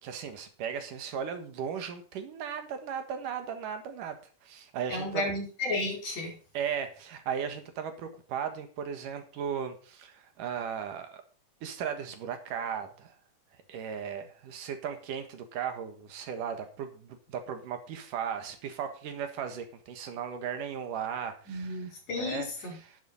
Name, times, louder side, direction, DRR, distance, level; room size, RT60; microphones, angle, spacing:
voice 1, 0.0-4.2 4.4-5.3 6.5-11.2 11.6-13.1 13.7-23.0, right 7 dB, 75° right, 7 dB, 3.1 m, -36 dB
voice 2, 4.9-6.3 21.5-22.8, left 2 dB, 55° left, 0 dB, 6.2 m, -33 dB
11.0 x 9.9 x 4.2 m, 0.39 s
omnidirectional pair, 3.8 m